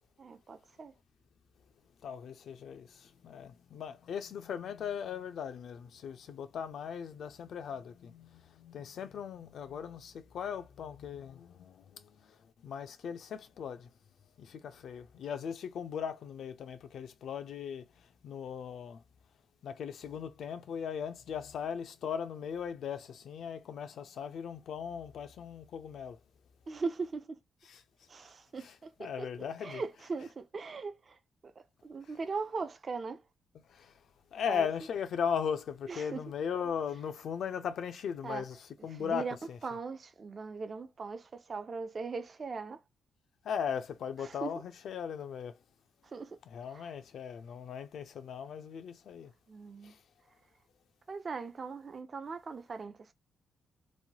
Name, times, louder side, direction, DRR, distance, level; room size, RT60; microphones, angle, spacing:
voice 1, 0.2-0.9 26.7-27.4 28.1-29.3 29.6-33.2 34.5-34.7 35.9-36.2 38.2-38.5 38.9-39.4 39.6-42.8 44.2-44.6 46.0-46.4 46.7-46.9 49.5-49.9 51.1-53.1, right 4 dB, 40° right, 0.5 m, -40 dB
voice 2, 2.0-13.9 14.4-19.0 19.6-26.2 27.7-27.8 29.0-29.8 33.7-34.0 34.3-38.6 38.8-39.6 43.4-45.6 46.5-49.3 49.8-50.0, left 7 dB, 75° left, 0.5 m, -38 dB
3.1 x 2.2 x 2.7 m
cardioid pair, 95°, 0 cm